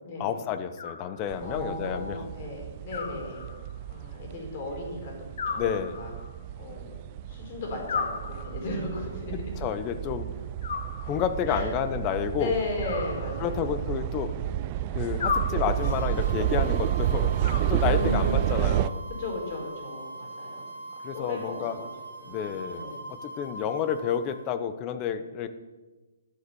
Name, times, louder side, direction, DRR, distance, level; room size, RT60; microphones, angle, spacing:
voice 1, 0.2-2.3 5.6-6.0 9.3-10.3 11.1-12.6 13.4-14.3 14.9-17.3 17.7-19.0 21.0-21.8 22.3-25.5, left 9 dB, 25° left, 11 dB, 0.8 m, -30 dB
Animal, 0.8-1.7 2.9-3.9 5.4-6.5 7.9-8.9 10.6-11.5 12.8-13.9 15.2-16.1 17.4-18.3, left 5 dB, 65° left, 1.3 m, -35 dB
sound 1, 1.3-18.9, right 12 dB, 30° right, 0.4 m, -30 dB
voice 2, 1.4-3.4 3.9-5.1 5.5-5.7 6.0-6.1 6.6-7.0 7.3-9.4 11.5-11.7 12.4-13.7 17.8-18.6 19.1-20.8 21.1-21.9 22.2-23.0, left 2 dB, 40° left, 0 dB, 4.4 m, -35 dB
sound 2, 15.8-24.4, right 2 dB, 85° left, 2.5 m, -41 dB
12.5 x 7.9 x 7.0 m, 1.2 s
hypercardioid pair, 155°, 0 cm